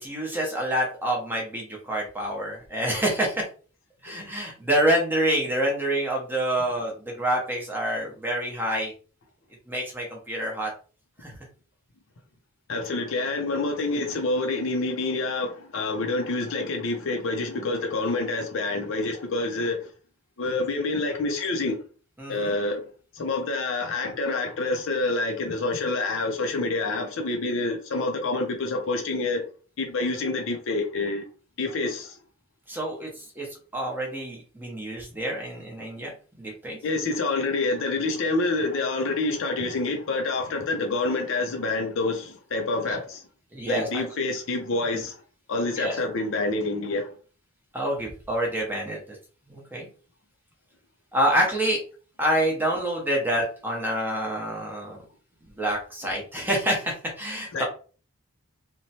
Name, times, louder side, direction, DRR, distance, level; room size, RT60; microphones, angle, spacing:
voice 1, 0.0-3.4 4.0-8.9 9.7-10.7 11.2-11.3 22.2-22.5 32.7-33.5 33.7-36.1 36.4-36.8 43.5-44.0 45.8-46.0 47.7-49.0 49.5-49.9 51.1-51.8 52.2-55.0 55.6-57.6, right 1 dB, 10° right, 0.7 m, -27 dB
voice 2, 12.7-19.9 20.4-21.8 22.3-22.8 23.1-29.4 29.8-31.2 31.6-32.2 36.8-43.2 43.7-45.2 45.5-47.1 57.5-57.6, left 3 dB, 60° left, 0.5 m, -27 dB
2.9 x 2.1 x 2.7 m
head